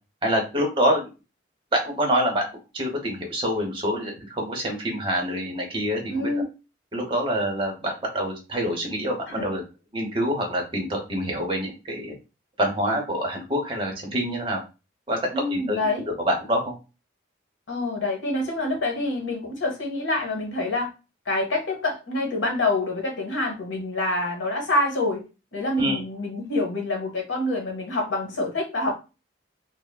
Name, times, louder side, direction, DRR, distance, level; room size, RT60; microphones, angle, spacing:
voice 1, 0.2-1.0 1.7-2.4 2.7-6.3 6.9-9.6 9.9-12.1 12.6-14.6 15.1-15.2 15.5-15.8 16.2-16.7 25.8-26.0, equal, 25° right, 0.7 m, -26 dB
voice 2, 6.1-6.4 9.3-9.4 15.3-16.0 17.7-20.9 21.3-25.2 25.5-28.9, left 2 dB, 85° left, 0.9 m, -26 dB
3.3 x 2.0 x 2.2 m
head